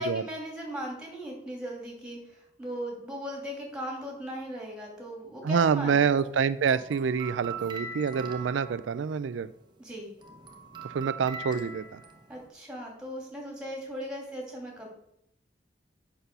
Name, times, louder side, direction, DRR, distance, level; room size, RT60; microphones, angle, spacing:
voice 1, 0.0-6.0 9.8-10.1 12.3-14.9, equal, 5° right, -1 dB, 2.8 m, -38 dB
voice 2, 5.4-9.5 10.8-12.0, right 6 dB, 85° right, 14 dB, 0.4 m, -27 dB
sound 1, 5.6-9.6 10.0-12.5, right 4 dB, 25° right, 1.1 m, -42 dB
8.0 x 5.6 x 6.7 m, 0.74 s
head